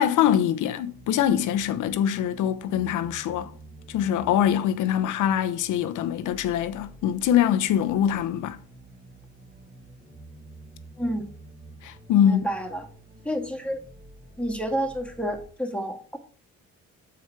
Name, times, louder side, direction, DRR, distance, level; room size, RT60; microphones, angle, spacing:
voice 1, 0.0-3.5 3.9-8.6 11.8-12.5, left 10 dB, 85° left, 0.8 m, -23 dB
sound 1, 0.7-15.5, right 2 dB, 20° right, 1.7 m, -49 dB
voice 2, 11.0-11.3 12.2-12.9 13.2-13.8 14.4-16.2, equal, 5° left, 1.8 m, -29 dB
7.1 x 4.8 x 6.0 m
cardioid pair, 90°, 30 cm